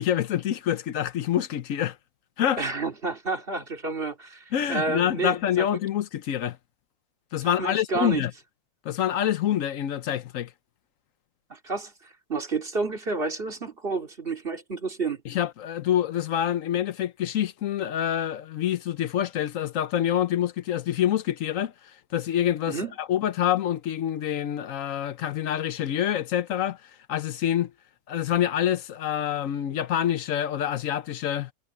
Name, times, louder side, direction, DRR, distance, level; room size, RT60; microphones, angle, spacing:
voice 1, 0.0-2.0 2.4-2.6 4.5-6.6 7.3-8.3 8.8-10.5 15.3-21.7 22.1-26.8 27.1-27.7 28.1-31.5, left 10 dB, 80° left, 1.1 m, -26 dB
voice 2, 2.6-5.6 7.6-8.2 11.5-15.2 22.7-22.9, right 3 dB, 45° right, 3.0 m, -30 dB
omnidirectional pair, 1.4 m